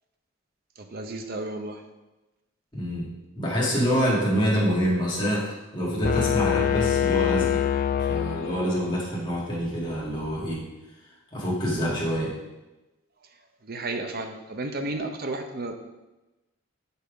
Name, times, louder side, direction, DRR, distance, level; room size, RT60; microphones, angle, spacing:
voice 1, 0.8-1.8 13.6-15.7, right 2 dB, 45° right, 6 dB, 0.7 m, -33 dB
voice 2, 2.7-3.1 3.3-5.5 5.7-7.6 8.0-10.6 11.3-12.3, equal, 20° left, -5 dB, 2.1 m, -26 dB
sound 1, 6.0-9.0, left 8 dB, 40° left, 0.3 m, -24 dB
6.4 x 5.5 x 5.1 m, 1.0 s
head